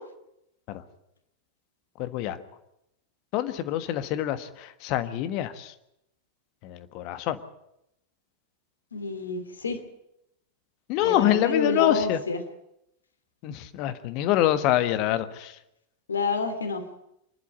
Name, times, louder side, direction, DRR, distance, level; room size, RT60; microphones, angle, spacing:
voice 1, 2.0-2.4 3.3-5.7 6.6-7.4 10.9-12.2 13.4-15.6, left 13 dB, 40° left, 11 dB, 1.4 m, -26 dB
voice 2, 8.9-9.8 11.0-12.4 16.1-16.8, left 4 dB, 70° left, 7 dB, 2.8 m, -28 dB
25.5 x 11.5 x 9.5 m, 0.82 s
figure-of-eight pair, 90°, 0 cm